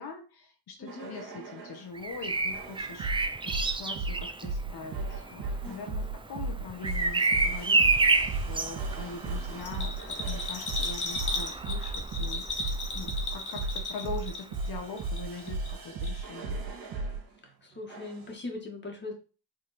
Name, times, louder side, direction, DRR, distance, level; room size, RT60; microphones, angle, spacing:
voice 1, 0.0-16.7, left 4 dB, 65° left, 4 dB, 1.1 m, -42 dB
voice 2, 0.8-1.2 5.6-6.1 17.4-19.1, left 2 dB, 25° left, 2 dB, 1.7 m, -41 dB
sound 1, 0.9-1.9 2.5-17.2 17.9-18.3, right 3 dB, 70° right, 2.4 m, -35 dB
Bird vocalization bird call bird song, 1.9-13.8 15.5-15.7, right 3 dB, 15° right, 0.5 m, -30 dB
Bell, 9.6-14.7 15.0-15.8 16.0-16.1, left 3 dB, 45° left, 1.6 m, -35 dB
7.7 x 3.7 x 4.2 m, 0.35 s
wide cardioid pair, 160°, 40 cm